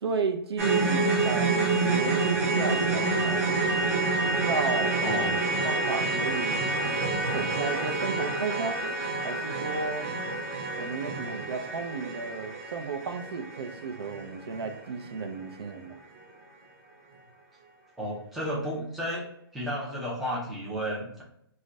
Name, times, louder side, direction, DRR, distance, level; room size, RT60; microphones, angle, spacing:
voice 1, 0.0-3.5 4.2-5.0 5.6-6.7 7.3-8.8 9.2-10.1 10.8-16.0, right 4 dB, 85° right, 5 dB, 0.5 m, -33 dB
sound 1, 0.6-14.8 15.0-15.2 15.7-15.8, right 3 dB, 35° right, 0.6 m, -28 dB
voice 2, 5.0-5.3 18.0-19.2 19.5-21.2, equal, ahead, -6 dB, 0.3 m, -32 dB
2.3 x 2.1 x 3.8 m, 0.73 s
hypercardioid pair, 165°, 13 cm